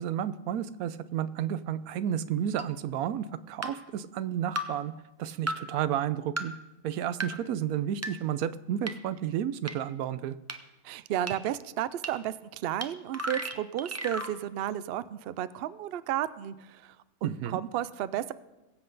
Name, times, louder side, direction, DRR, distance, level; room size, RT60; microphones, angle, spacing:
voice 1, 0.0-4.9 5.2-6.5 6.8-10.3 17.2-17.6, right 10 dB, 85° right, 15 dB, 1.1 m, -31 dB
sound 1, 2.6-2.7 3.6-3.7 4.6-4.7 5.5-5.6 6.4-6.5 7.2-7.3 8.0-8.1 8.9-9.0 9.7-9.8 10.5-10.6 11.3-11.4 12.0-12.1 12.8-12.9 13.1-14.3, right 1 dB, 20° right, 0.4 m, -33 dB
voice 2, 10.8-12.3 12.6-16.5 17.2-18.3, right 11 dB, 70° right, 16 dB, 0.6 m, -32 dB
21.5 x 7.8 x 3.9 m, 1.0 s
omnidirectional pair, 1.5 m